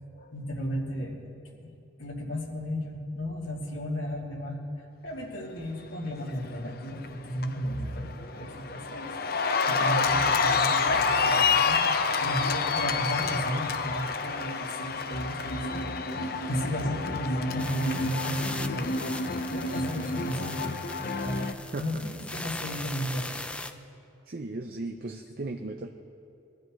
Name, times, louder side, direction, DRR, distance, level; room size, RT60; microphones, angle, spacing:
voice 1, 0.1-1.7 2.0-4.6 5.0-15.9 16.5-19.1 19.5-20.6 21.2-21.4 21.8-23.4, equal, 85° left, -3 dB, 2.7 m, -34 dB
Cheering, 6.7-7.1 7.4-21.5, left 4 dB, 50° left, 0.6 m, -28 dB
sound 1, 17.6-23.7, left 2 dB, 5° left, 0.3 m, -40 dB
voice 2, 24.3-25.9, right 2 dB, 50° right, 5 dB, 0.6 m, -36 dB
23.0 x 13.0 x 3.2 m, 2.6 s
head